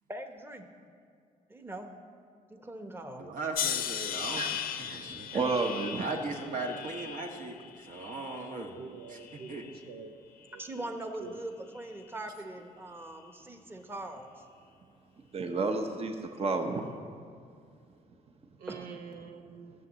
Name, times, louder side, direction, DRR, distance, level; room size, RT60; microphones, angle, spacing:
voice 1, 0.1-0.7 1.5-1.9 2.5-3.3 10.6-14.3 18.7-18.9, right 1 dB, 15° right, 5 dB, 1.1 m, -41 dB
voice 2, 3.2-5.4 6.0-8.8 9.1-9.2 9.5-9.7, right 3 dB, 60° right, 1 dB, 1.7 m, -38 dB
sound 1, 3.5-8.7 9.1-9.8 10.6-10.9, left 9 dB, 75° left, 0.8 m, -38 dB
voice 3, 4.9-6.1 15.3-16.9, right 3 dB, 40° right, 4 dB, 1.1 m, -31 dB
voice 4, 8.7-10.2 10.5-11.7 18.6-19.7, right 5 dB, 80° right, 4 dB, 0.8 m, -46 dB
13.5 x 7.0 x 7.5 m, 2.3 s
cardioid pair, 85°, 16 cm